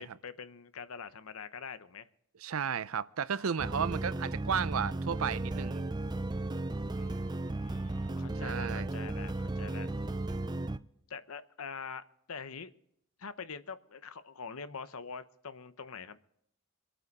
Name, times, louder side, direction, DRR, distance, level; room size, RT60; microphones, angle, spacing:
voice 1, 0.0-2.1 3.4-3.6 6.9-9.9 11.1-12.7 13.2-16.2, left 5 dB, 90° left, 0.9 m, -45 dB
voice 2, 2.4-5.8 8.4-8.9, right 7 dB, 80° right, 0.5 m, -33 dB
sound 1, 3.6-10.8, right 2 dB, 20° right, 0.4 m, -35 dB
26.0 x 9.0 x 4.2 m
head